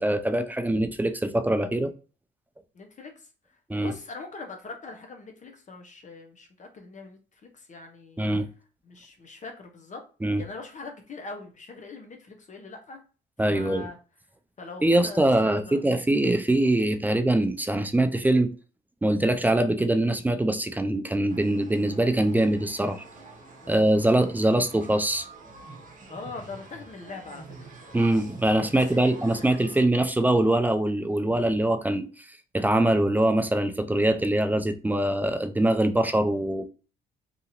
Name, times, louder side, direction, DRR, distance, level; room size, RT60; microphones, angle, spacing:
voice 1, 0.0-1.9 3.7-3.9 8.2-8.5 10.2-10.4 13.4-13.9 14.8-18.5 19.0-23.0 23.7-25.3 27.9-32.1 32.5-36.7, right 1 dB, 10° right, 0.3 m, -23 dB
voice 2, 2.7-3.1 3.8-7.2 7.5-8.2 8.9-10.0 10.4-13.0 13.5-14.0 14.6-15.8 23.6-23.9 26.1-27.4 28.9-29.5, left 3 dB, 40° left, 0.7 m, -42 dB
sound 1, 21.3-29.9, right 3 dB, 45° right, 0.9 m, -47 dB
2.8 x 2.4 x 2.8 m
cardioid pair, 90°, 20 cm